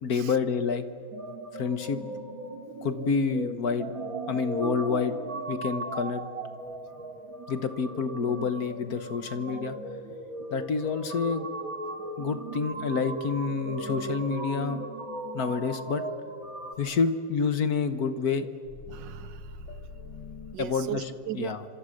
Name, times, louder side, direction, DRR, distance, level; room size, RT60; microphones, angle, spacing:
voice 1, 0.0-0.8 1.5-2.0 2.8-3.9 4.3-5.2 5.5-6.2 7.5-9.8 10.5-11.5 12.2-14.9 15.3-16.0 16.8-18.5 20.6-21.0 21.3-21.6, left 5 dB, 55° left, 10 dB, 1.5 m, -28 dB
sound 1, 1.1-16.7, right 2 dB, 45° right, 2.4 m, -37 dB
sound 2, 4.5-5.9 6.5-7.0 7.5-7.6 8.3-15.9 16.3-18.0 18.4-20.6, left 5 dB, 75° left, 2.1 m, -50 dB
voice 2, 10.1-10.5 18.9-19.9 20.5-21.6, right 11 dB, 70° right, 15 dB, 1.4 m, -38 dB
29.5 x 26.5 x 6.5 m, 2.6 s
omnidirectional pair, 2.1 m